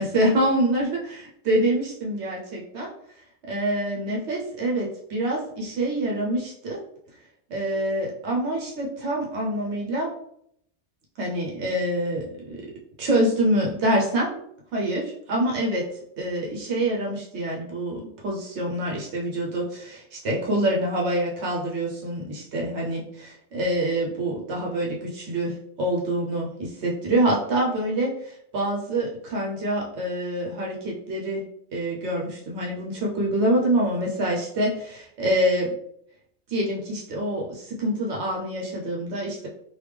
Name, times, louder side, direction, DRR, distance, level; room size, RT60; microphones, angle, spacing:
voice 1, 0.0-2.9 3.4-6.8 7.5-10.1 11.2-12.7 13.0-14.4 14.7-15.9 16.2-31.4 31.7-35.7 36.5-39.5, right 1 dB, 80° right, -2 dB, 1.0 m, -26 dB
3.3 x 2.5 x 3.3 m, 0.70 s
omnidirectional pair, 1.1 m